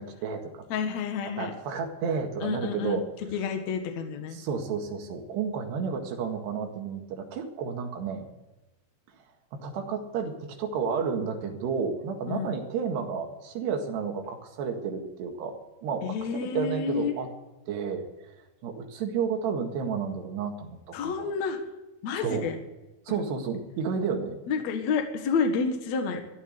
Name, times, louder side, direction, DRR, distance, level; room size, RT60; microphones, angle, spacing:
voice 1, 0.0-0.7 1.4-3.1 4.3-8.3 9.5-17.3 17.7-18.1 18.6-20.8 21.0-21.3 22.1-22.5 23.1-24.4, right 6 dB, 80° right, 4 dB, 4.0 m, -31 dB
voice 2, 0.7-1.5 2.4-3.0 3.3-4.4 12.3-12.6 16.0-17.1 20.9-21.6 22.0-22.6 23.1-23.2 24.5-26.2, left 5 dB, 55° left, 5 dB, 2.3 m, -29 dB
14.0 x 11.0 x 8.1 m, 1.0 s
omnidirectional pair, 4.7 m